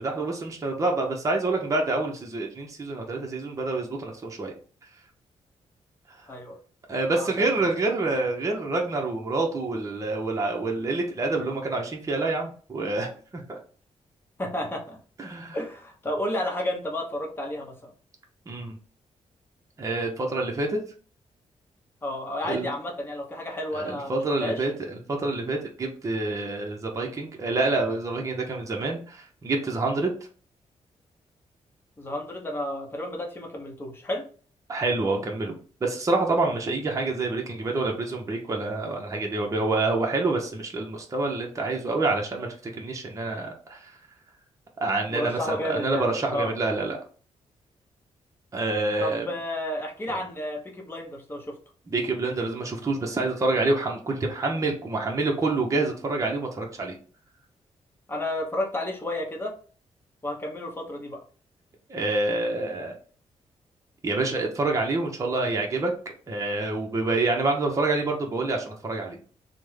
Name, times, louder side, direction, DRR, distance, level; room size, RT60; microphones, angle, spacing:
voice 1, 0.0-4.5 6.9-13.1 13.3-13.6 15.2-15.6 18.5-18.7 19.8-20.8 22.4-22.7 23.7-30.1 34.7-35.5 35.8-43.9 44.8-47.0 48.5-49.3 51.9-56.9 61.9-63.0 64.0-65.9 66.3-69.2, right 2 dB, 30° right, 1 dB, 0.7 m, -27 dB
voice 2, 7.1-7.5 14.4-15.0 15.5-17.9 22.0-24.7 32.0-34.3 45.1-46.5 49.0-51.6 58.1-59.5 60.2-61.2, left 1 dB, 20° left, 0 dB, 0.8 m, -31 dB
3.3 x 2.1 x 3.1 m, 0.42 s
cardioid pair, 100°, 12 cm